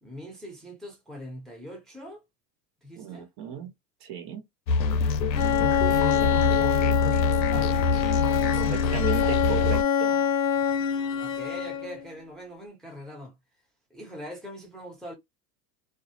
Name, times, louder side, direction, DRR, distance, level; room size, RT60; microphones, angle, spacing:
voice 1, 0.0-2.2 2.8-3.3 5.9-7.2 7.5-7.9 11.2-13.3 13.9-15.1, equal, ahead, 0.8 m, -41 dB
voice 2, 3.0-3.7 4.0-4.4 8.6-10.3, right 8 dB, 50° right, 1.0 m, -35 dB
sound 1, 4.7-9.8, left 4 dB, 90° left, 0.5 m, -25 dB
Bowed string instrument, 5.3-12.0, left 8 dB, 45° left, 0.8 m, -26 dB
2.2 x 2.0 x 2.8 m
hypercardioid pair, 95°, 49 cm